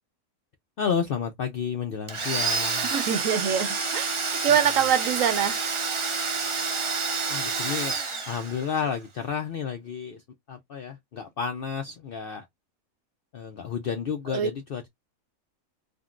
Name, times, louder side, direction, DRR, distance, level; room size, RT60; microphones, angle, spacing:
voice 1, 0.8-2.9 7.3-8.0 8.3-10.2 10.5-12.5 13.3-14.9, left 6 dB, 70° left, 0.5 m, -31 dB
Domestic sounds home sounds, 2.1-8.9, right 4 dB, 45° right, 0.4 m, -28 dB
voice 2, 2.9-4.1 4.4-5.6 14.3-14.5, right 8 dB, 70° right, 0.9 m, -24 dB
3.6 x 2.0 x 2.3 m
omnidirectional pair, 1.5 m